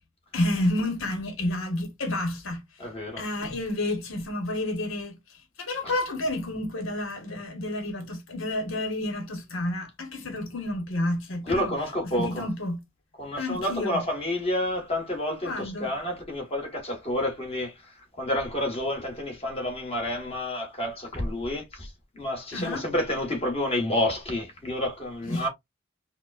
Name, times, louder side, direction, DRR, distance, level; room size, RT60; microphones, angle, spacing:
voice 1, 0.3-2.6 3.2-5.2 5.6-11.7 12.1-12.8 13.4-14.0 15.4-15.9 22.5-22.8 25.3-25.5, left 1 dB, 75° left, 1.2 m, -30 dB
voice 2, 2.8-3.2 5.8-5.9 11.4-12.4 13.2-17.7 18.2-21.9 22.2-25.5, left 1 dB, 30° left, 1.3 m, -29 dB
4.9 x 2.1 x 2.4 m
head